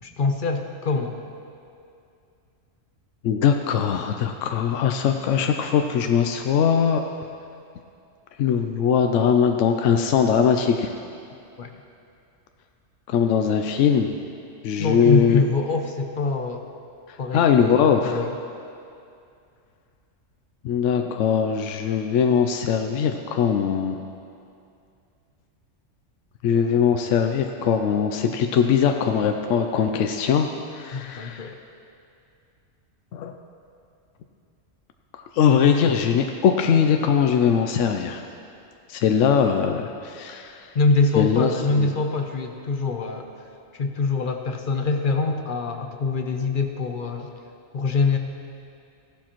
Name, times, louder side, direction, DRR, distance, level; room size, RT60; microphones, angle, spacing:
voice 1, 0.0-1.2 11.6-11.7 14.8-16.7 17.2-18.4 30.9-31.6 40.7-43.3 43.7-47.3 47.7-48.2, left 3 dB, 50° left, 5 dB, 0.8 m, -24 dB
voice 2, 3.2-7.0 8.4-10.9 13.1-14.1 14.6-15.4 17.3-18.2 20.6-24.0 26.4-31.5 33.1-33.3 35.3-38.2 38.9-40.7 41.2-41.5 41.8-41.9, left 7 dB, 75° left, 5 dB, 0.9 m, -21 dB
15.5 x 11.5 x 3.0 m, 2.5 s
omnidirectional pair, 1.3 m